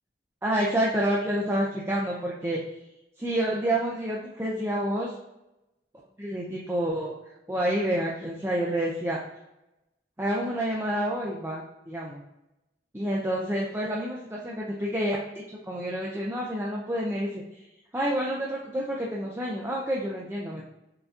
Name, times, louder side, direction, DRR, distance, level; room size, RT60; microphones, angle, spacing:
voice 1, 0.4-2.6 3.2-5.1 6.2-7.1 7.5-9.2 10.2-12.2 12.9-15.2 15.7-17.4 17.9-20.7, right 1 dB, 15° right, -4 dB, 0.5 m, -28 dB
6.8 x 2.7 x 2.4 m, 0.94 s
head